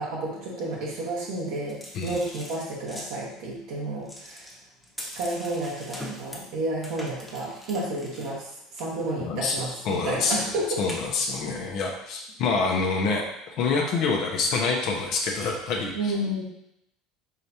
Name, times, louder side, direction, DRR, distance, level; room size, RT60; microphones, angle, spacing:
voice 1, 0.0-4.4 5.0-10.9 15.9-16.4, right 1 dB, 75° right, -5 dB, 1.2 m, -31 dB
sound 1, 1.7-3.1 4.0-6.5 6.8-8.3 8.8-9.1 9.9-10.1 10.9-11.0, equal, 5° left, 1.0 m, -41 dB
voice 2, 9.2-9.5 9.8-10.4 10.8-13.2 13.6-16.1, left 4 dB, 60° left, 0 dB, 0.8 m, -26 dB
4.8 x 3.3 x 2.8 m, 0.80 s
supercardioid pair, 95°, 0 cm